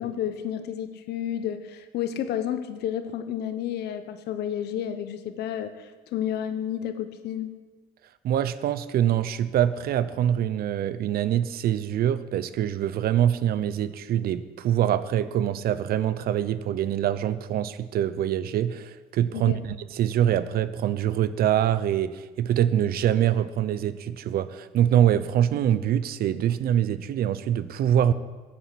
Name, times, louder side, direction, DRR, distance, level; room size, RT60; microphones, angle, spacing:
voice 1, 0.0-7.5 19.3-19.6, left 10 dB, 75° left, 10 dB, 1.2 m, -31 dB
voice 2, 8.2-28.1, right 10 dB, 65° right, 15 dB, 0.8 m, -24 dB
14.5 x 8.7 x 8.5 m, 1.4 s
cardioid pair, 110°, 17 cm